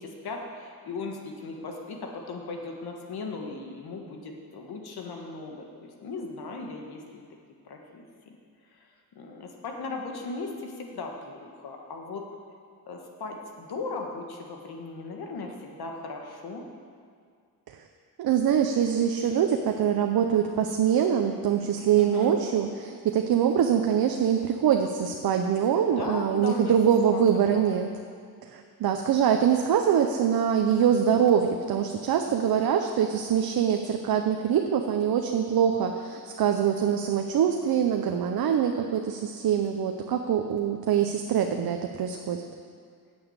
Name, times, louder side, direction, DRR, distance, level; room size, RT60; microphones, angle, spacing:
voice 1, 0.0-7.2 7.6-8.4 8.7-8.9 9.1-12.2 12.9-16.6 22.0-22.4 25.8-26.7 27.1-27.2 27.5-27.8, left 3 dB, 80° left, 2 dB, 1.6 m, -37 dB
voice 2, 18.2-27.9 28.5-42.4, right 8 dB, 70° right, 4 dB, 0.7 m, -24 dB
8.7 x 7.3 x 8.1 m, 2.1 s
cardioid pair, 110°, 37 cm